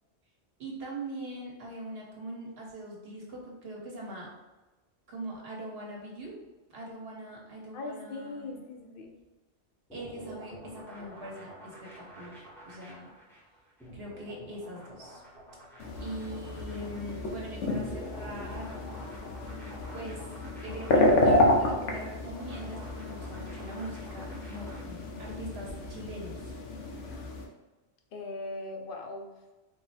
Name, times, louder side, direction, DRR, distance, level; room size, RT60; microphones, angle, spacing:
voice 1, 0.6-4.3 5.1-6.4 6.7-8.6 9.9-13.1 13.9-15.2 16.0-18.8 19.9-20.2 20.6-26.5, right 1 dB, 60° right, -2 dB, 1.3 m, -42 dB
voice 2, 7.7-9.2 27.1-27.4 28.1-29.3, left 2 dB, 55° left, 3 dB, 0.7 m, -40 dB
sound 1, 9.9-25.3, equal, ahead, 0.7 m, -48 dB
sound 2, 15.8-27.4, left 1 dB, 90° left, 1.1 m, -30 dB
4.2 x 2.1 x 4.1 m, 1.1 s
omnidirectional pair, 1.2 m